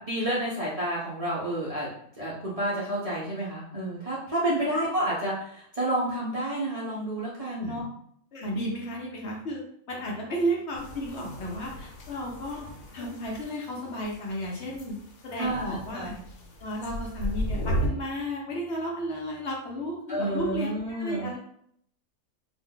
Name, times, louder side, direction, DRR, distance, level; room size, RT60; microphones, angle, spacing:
voice 1, 0.1-1.9 2.2-7.8 13.0-13.1 15.4-16.2 20.1-21.3, right 1 dB, 40° right, -8 dB, 0.5 m, -30 dB
voice 2, 8.3-12.7 12.9-16.1 16.6-21.4, equal, 60° left, -2 dB, 0.8 m, -33 dB
sound 1, 10.8-17.9, equal, 90° left, 1.1 m, -35 dB
2.5 x 2.1 x 3.7 m, 0.67 s
omnidirectional pair, 1.4 m